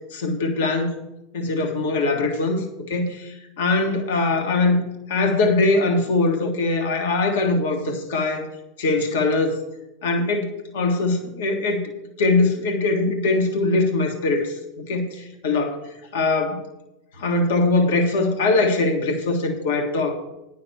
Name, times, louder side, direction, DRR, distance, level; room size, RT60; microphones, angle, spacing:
voice 1, 0.1-1.0 1.3-4.8 5.1-8.5 8.8-9.6 10.0-11.9 12.2-15.8 16.1-16.6 17.2-20.1, left 3 dB, 75° left, 4 dB, 1.7 m, -22 dB
10.0 x 6.3 x 6.8 m, 0.92 s
hypercardioid pair, 95°, 0 cm